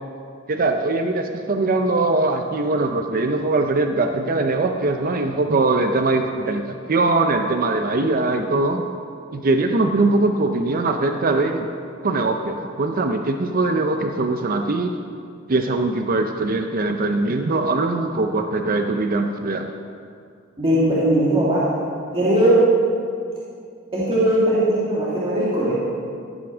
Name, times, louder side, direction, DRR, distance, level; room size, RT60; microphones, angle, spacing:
voice 1, 0.5-8.8 9.3-11.7 12.0-14.9 15.5-19.7, right 2 dB, 45° right, 5 dB, 0.6 m, -21 dB
voice 2, 20.6-21.6 22.1-22.6 23.9-25.7, right 1 dB, 25° right, -9 dB, 2.1 m, -19 dB
14.5 x 6.0 x 6.1 m, 2.3 s
head